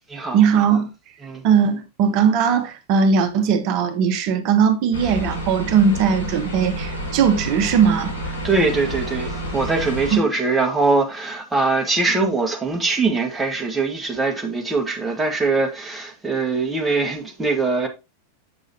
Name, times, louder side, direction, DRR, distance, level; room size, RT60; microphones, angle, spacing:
voice 1, 0.3-0.9 1.4-8.1 10.1-10.3, right 6 dB, 40° right, 1.1 m, -19 dB
sound 1, 4.9-10.2, right 1 dB, 65° left, 5.0 m, -29 dB
voice 2, 8.4-17.9, right 3 dB, 10° right, 1.9 m, -22 dB
7.8 x 6.1 x 2.9 m
figure-of-eight pair, 90°, 0 cm